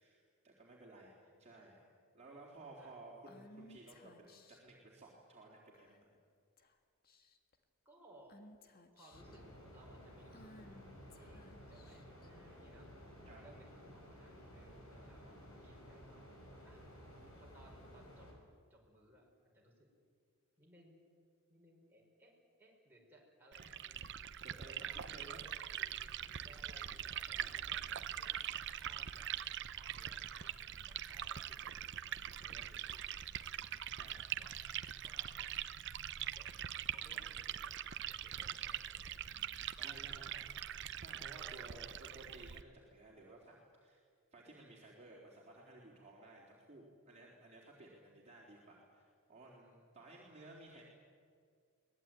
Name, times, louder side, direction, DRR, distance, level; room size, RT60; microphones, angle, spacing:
voice 1, 0.0-1.9 2.1-6.1 13.3-13.5 14.9-15.1 23.6-23.7 24.3-25.4 27.4-27.6 30.6-30.8 33.9-34.2 37.1-37.3 39.3-40.3 40.8-44.0 44.3-50.8, right 2 dB, 30° right, -4 dB, 3.9 m, -57 dB
Female speech woman speaking / Whispering, 3.3-4.7 5.7-6.2 6.6-6.7 7.0-7.5 8.3-9.4 10.3-12.3, left 1 dB, 40° left, 1.7 m, -59 dB
voice 2, 7.9-8.4 8.9-9.5 9.7-10.7 11.2-12.9 13.2-16.2 16.6-16.8 17.4-18.3 18.7-19.9 20.6-21.0 21.5-22.3 22.6-24.0 24.7-25.2 25.8-33.5 34.4-34.5 35.0-35.6 36.1-36.5 36.9-37.7 38.0-39.2 39.7-40.5 41.4-41.9 48.1-48.2, right 1 dB, 10° right, -3 dB, 5.3 m, -63 dB
sound 1, 9.1-18.3, equal, 65° left, 6.7 m, -55 dB
Liquid, 23.5-42.6, right 10 dB, 55° right, 0.7 m, -43 dB
23.5 x 19.0 x 9.2 m, 2.2 s
head